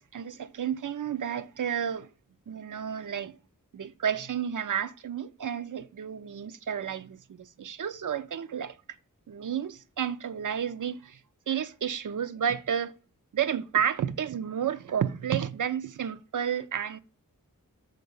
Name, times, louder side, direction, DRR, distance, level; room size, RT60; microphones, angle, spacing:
voice 1, 0.0-2.1 2.5-3.4 3.7-8.8 9.3-11.2 11.5-12.9 13.3-17.0, right 8 dB, 65° right, 0.5 m, -31 dB
5.2 x 3.9 x 5.3 m
wide cardioid pair, 50°, 34 cm